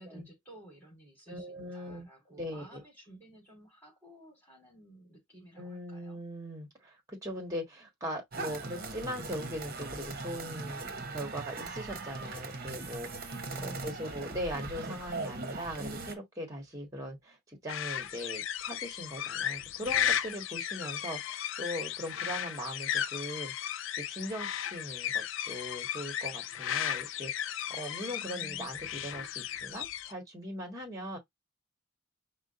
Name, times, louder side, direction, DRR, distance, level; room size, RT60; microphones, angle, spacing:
voice 1, 0.0-6.2 13.5-14.4 28.1-28.7, right 1 dB, 10° left, 3.0 m, -53 dB
voice 2, 1.3-2.1 2.4-2.8 5.6-23.5 23.9-31.2, equal, 15° right, 1.5 m, -40 dB
sound 1, 8.3-16.2, right 3 dB, 45° right, 1.0 m, -40 dB
sound 2, 17.7-30.1, left 10 dB, 65° left, 0.3 m, -35 dB
5.0 x 2.2 x 3.9 m
head